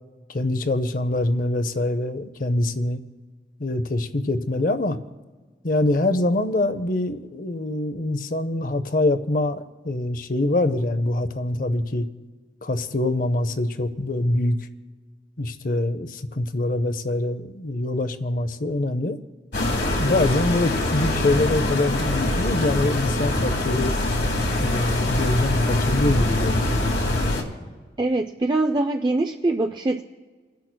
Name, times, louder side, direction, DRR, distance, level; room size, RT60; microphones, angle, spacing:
voice 1, 0.3-3.0 3.6-5.0 5.6-12.1 12.6-14.7 15.4-19.2 20.0-23.9 24.6-27.0, left 2 dB, 50° left, 11 dB, 0.6 m, -24 dB
sound 1, 19.5-27.4, left 1 dB, 65° left, 1.7 m, -23 dB
voice 2, 28.0-30.0, right 2 dB, 25° right, 5 dB, 0.4 m, -23 dB
29.5 x 10.5 x 2.2 m, 1.4 s
head